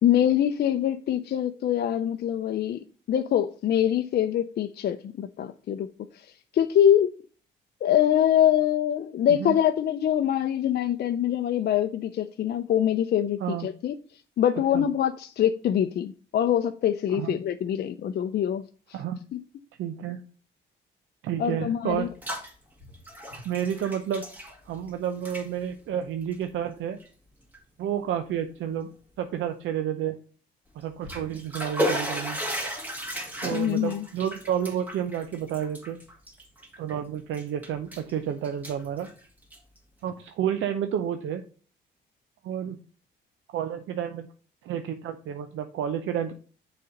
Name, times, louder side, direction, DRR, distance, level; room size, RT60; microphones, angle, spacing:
voice 1, 0.0-2.8 3.1-5.9 6.5-7.1 7.8-13.9 14.4-18.6 21.4-22.1 33.5-34.0, left 10 dB, 55° left, 0.5 m, -24 dB
voice 2, 19.8-20.2 21.2-22.1 23.4-24.3 24.7-27.0 27.8-28.9 29.2-30.2 30.7-32.4 33.4-36.0 36.8-39.1 40.0-41.4 42.4-42.8 43.5-44.3 44.6-46.3, right 9 dB, 80° right, 0.6 m, -30 dB
Bathtub (filling or washing), 21.9-22.5 22.8-24.9 25.2-25.5 26.2-26.4 27.0-27.1 27.5-27.6 30.8-36.9 37.3-38.1 38.4-39.8, equal, 10° right, 2.1 m, -34 dB
6.7 x 4.1 x 5.1 m
cardioid pair, 90°, 20 cm